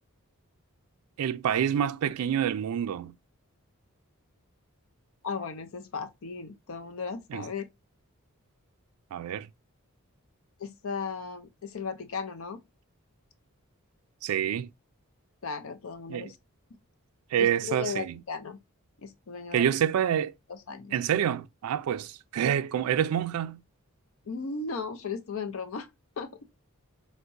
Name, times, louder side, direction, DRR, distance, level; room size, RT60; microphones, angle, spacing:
voice 1, 1.2-3.1 7.3-7.5 9.1-9.5 14.2-14.7 16.1-16.3 17.3-18.2 19.5-20.3 20.9-23.6, right 9 dB, 80° right, 0.3 m, -27 dB
voice 2, 5.2-7.7 10.6-12.6 15.4-16.4 17.3-18.6 19.0-19.7 20.5-20.9 24.2-25.9 26.2-26.3, left 5 dB, 65° left, 0.5 m, -36 dB
4.5 x 2.1 x 2.5 m
head